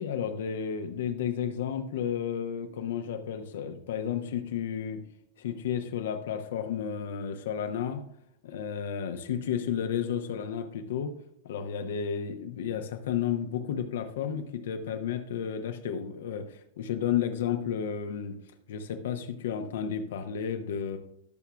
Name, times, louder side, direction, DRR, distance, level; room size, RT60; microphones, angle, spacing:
voice 1, 0.0-5.0 5.4-8.0 8.4-11.1 11.4-18.4 18.7-21.0, left 8 dB, 60° left, 7 dB, 1.0 m, -32 dB
19.0 x 6.9 x 2.3 m, 0.74 s
figure-of-eight pair, 90°, 0 cm